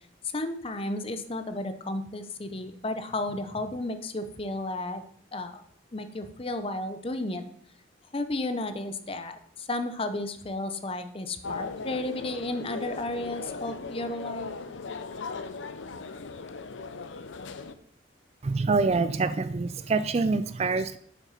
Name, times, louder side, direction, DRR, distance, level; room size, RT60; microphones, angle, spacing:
voice 1, 0.3-5.0 5.3-5.6 5.9-7.4 8.1-14.5, left 2 dB, 30° left, 9 dB, 0.6 m, -33 dB
sound 1, 11.4-17.7, left 4 dB, 70° left, 0.6 m, -38 dB
voice 2, 18.4-21.0, right 4 dB, 30° right, 13 dB, 0.3 m, -26 dB
7.5 x 6.1 x 5.7 m, 0.64 s
head